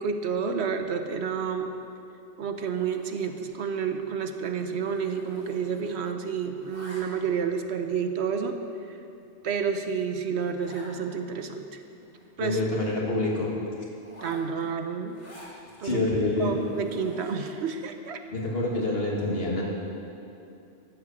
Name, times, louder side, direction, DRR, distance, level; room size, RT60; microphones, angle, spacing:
voice 1, 0.0-1.7 2.4-8.6 9.4-11.7 12.4-12.6 14.2-15.2 15.8-16.1 16.4-18.2, right 6 dB, 70° right, 7 dB, 1.0 m, -30 dB
Zipper (clothing), 2.6-3.6 3.9-4.2 4.4-6.1 6.4-7.4 8.0-8.1 8.7-8.8 9.2-9.3 9.5-9.6 9.9-10.0 10.6-10.9 11.4-11.5 11.7-13.0 14.0-15.6 16.2-17.6, equal, 80° left, 3.3 m, -50 dB
voice 2, 12.4-13.5 15.8-16.5 18.3-19.6, left 2 dB, 55° left, -3 dB, 2.2 m, -26 dB
12.0 x 7.9 x 7.2 m, 2.7 s
omnidirectional pair, 1.2 m